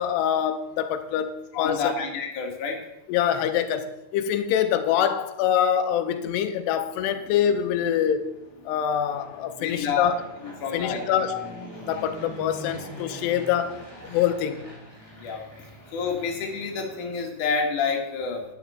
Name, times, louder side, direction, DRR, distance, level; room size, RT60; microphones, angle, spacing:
voice 1, 0.0-1.9 3.1-8.3 8.7-10.2 10.7-11.5 11.9-14.7, left 9 dB, 90° left, 2.7 m, -25 dB
voice 2, 1.5-2.8 9.6-10.1 10.6-11.0 15.2-15.4 15.9-18.4, left 5 dB, 55° left, 2.9 m, -28 dB
Fixed-wing aircraft airplane, 6.6-17.7, right 1 dB, 10° left, 2.3 m, -44 dB
12.0 x 10.5 x 4.2 m
omnidirectional pair, 4.8 m